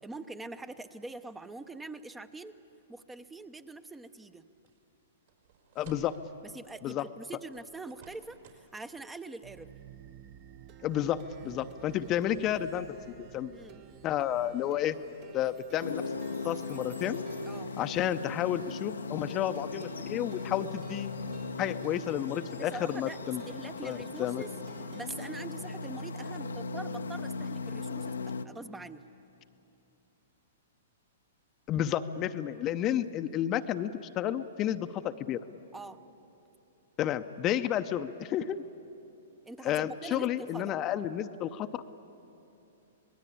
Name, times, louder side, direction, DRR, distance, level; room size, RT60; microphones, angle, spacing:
voice 1, 0.0-2.5 2.9-4.5 6.4-9.7 13.5-13.8 17.5-17.7 22.6-24.6 24.9-29.0 32.9-33.0 35.7-36.0 39.5-40.7, right 2 dB, 10° right, 11 dB, 0.8 m, -44 dB
sound 1, 4.7-4.8 5.3-6.2 7.5-8.7 8.9-9.1, right 8 dB, 60° right, 4.7 m, -55 dB
voice 2, 5.8-6.2 6.8-7.0 10.8-13.5 14.0-15.0 15.3-16.0 16.4-17.2 17.8-21.1 21.6-23.4 23.8-24.4 31.7-35.4 37.0-38.6 39.6-41.7, left 11 dB, 30° left, 9 dB, 0.7 m, -31 dB
Plucked string instrument, 9.4-25.5, right 10 dB, 40° right, 1.1 m, -53 dB
sound 2, 15.8-28.4, left 4 dB, 85° left, 0.9 m, -38 dB
26.0 x 20.0 x 8.6 m, 2.8 s
hypercardioid pair, 115°, 0 cm